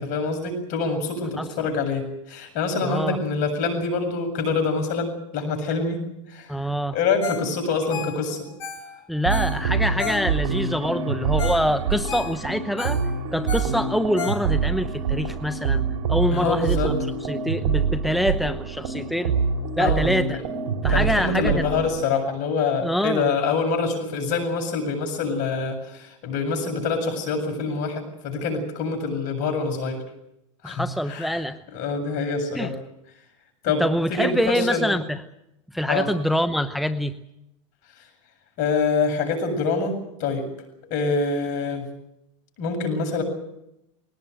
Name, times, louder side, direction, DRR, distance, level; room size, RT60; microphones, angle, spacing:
voice 1, 0.0-6.6 6.9-8.5 16.3-16.9 19.8-20.1 20.9-30.0 30.6-31.4 31.7-32.7 33.6-33.8 34.1-35.0 35.9-36.1 38.6-40.4 40.8-41.9 42.6-43.2, left 4 dB, 50° left, 5 dB, 7.6 m, -25 dB
voice 2, 2.8-3.2 6.5-6.9 9.1-13.0 13.3-15.8 16.1-16.9 17.2-19.4 19.8-20.4 20.8-21.6 22.8-23.3 30.6-31.6 32.5-32.7 33.8-35.2 35.7-37.1, equal, ahead, 10 dB, 0.9 m, -25 dB
Ringtone, 7.2-7.5 7.8-10.6 11.1-11.2 11.4-11.7 11.9-14.8 15.3-15.4, left 7 dB, 85° left, 2.6 m, -34 dB
sound 1, 9.3-22.1, right 5 dB, 75° right, 3.6 m, -26 dB
21.0 x 18.5 x 9.2 m, 0.83 s
supercardioid pair, 120°, 16 cm